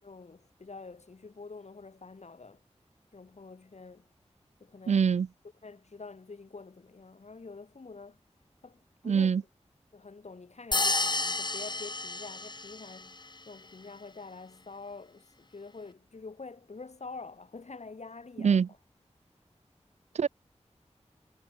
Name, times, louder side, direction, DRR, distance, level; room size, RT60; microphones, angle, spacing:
voice 1, 0.0-2.6 3.1-4.1 4.6-5.1 5.6-8.2 8.6-9.5 9.9-13.2 13.4-18.8, left 4 dB, 70° left, 6.5 m, -47 dB
voice 2, 4.9-5.3 9.1-9.4 18.4-18.7 20.2-20.3, right 6 dB, 70° right, 0.4 m, -24 dB
sound 1, 10.7-13.0, left 2 dB, 40° left, 1.5 m, -30 dB
wide cardioid pair, 60°, 12 cm